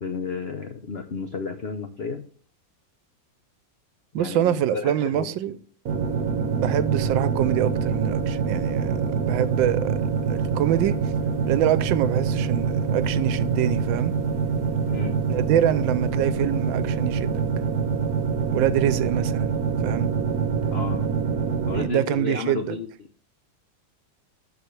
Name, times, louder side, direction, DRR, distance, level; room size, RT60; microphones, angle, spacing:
voice 1, 0.0-2.2 4.1-5.3 14.8-15.2 20.7-21.1 21.7-22.9, left 5 dB, 75° left, 0.5 m, -32 dB
voice 2, 4.1-5.6 6.6-10.0 10.3-11.1 11.5-14.1 15.3-17.4 18.5-20.1 21.7-22.8, right 11 dB, 85° right, 1.3 m, -25 dB
sound 1, 5.9-21.9, right 5 dB, 55° right, 1.3 m, -25 dB
13.0 x 4.7 x 3.2 m
omnidirectional pair, 2.0 m